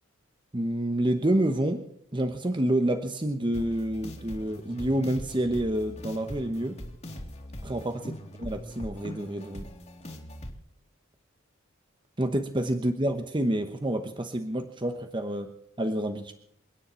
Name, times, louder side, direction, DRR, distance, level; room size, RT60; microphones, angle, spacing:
voice 1, 0.5-1.9 2.1-6.8 7.6-8.1 8.4-9.7 12.2-16.3, right 1 dB, 25° right, 7 dB, 1.1 m, -28 dB
sound 1, 3.5-10.5, left 1 dB, 35° left, 2.6 m, -41 dB
29.0 x 9.9 x 4.5 m, 0.72 s
head